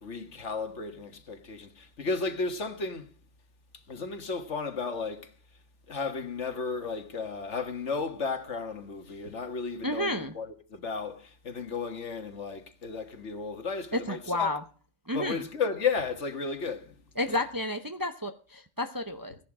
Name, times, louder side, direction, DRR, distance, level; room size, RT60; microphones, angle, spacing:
voice 1, 0.0-3.1 3.9-5.3 5.9-14.5 15.1-16.9 17.3-17.4, left 4 dB, 65° left, 1.8 m, -34 dB
voice 2, 9.8-10.3 13.9-14.6 15.1-15.5 17.2-19.4, left 1 dB, 20° right, 0.8 m, -31 dB
16.5 x 11.0 x 4.9 m
omnidirectional pair, 1.3 m